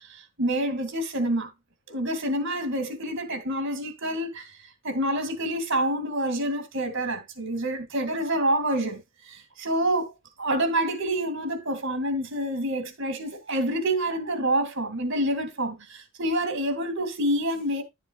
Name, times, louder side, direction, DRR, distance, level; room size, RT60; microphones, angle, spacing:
voice 1, 0.0-1.5 1.9-4.5 4.8-17.8, right 1 dB, 60° right, 2.0 m, -27 dB
11.0 x 7.4 x 2.3 m
head